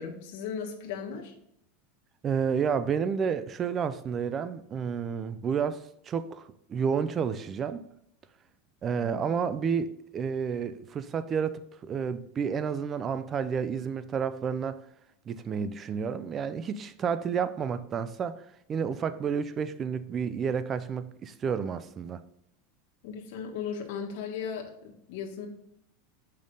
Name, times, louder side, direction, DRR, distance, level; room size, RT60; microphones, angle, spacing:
voice 1, 0.0-1.3 23.0-25.5, left 7 dB, 65° left, 1.4 m, -36 dB
voice 2, 2.2-7.9 8.8-14.8 15.3-22.2, right 6 dB, 25° right, 0.5 m, -30 dB
6.8 x 5.4 x 3.8 m
supercardioid pair, 140°, 0 cm